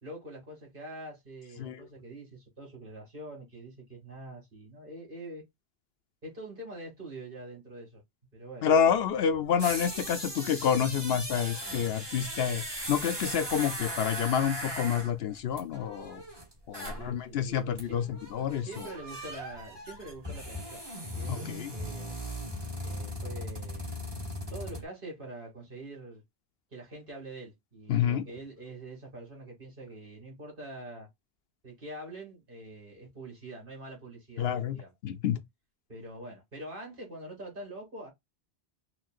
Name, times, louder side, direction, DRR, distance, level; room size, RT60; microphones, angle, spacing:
voice 1, 0.0-5.4 6.2-8.0 8.3-8.7 16.8-18.0 18.6-20.8 21.1-22.1 22.8-23.9 24.5-26.2 26.7-31.1 31.6-34.9 35.9-38.1, right 1 dB, 50° right, 2.4 m, -45 dB
voice 2, 8.6-16.2 16.7-18.7 21.3-21.7 27.9-28.2 34.4-35.4, left 8 dB, 70° left, 0.8 m, -28 dB
sound 1, 8.8-8.9 9.3-17.1 17.4-17.5 17.8-24.8, equal, 25° right, 1.8 m, -38 dB
6.0 x 2.5 x 2.4 m
omnidirectional pair, 1.1 m